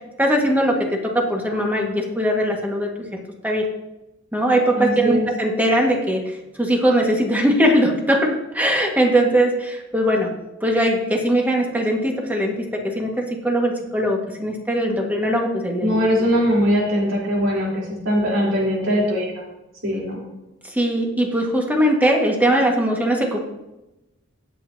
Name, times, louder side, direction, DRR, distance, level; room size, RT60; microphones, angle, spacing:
voice 1, 0.2-3.7 4.3-10.3 10.6-16.0 20.6-23.4, equal, 10° right, 0 dB, 1.8 m, -20 dB
voice 2, 4.7-5.3 15.8-19.4 19.8-20.2, equal, 75° right, -4 dB, 3.8 m, -21 dB
18.0 x 8.4 x 2.9 m, 0.96 s
head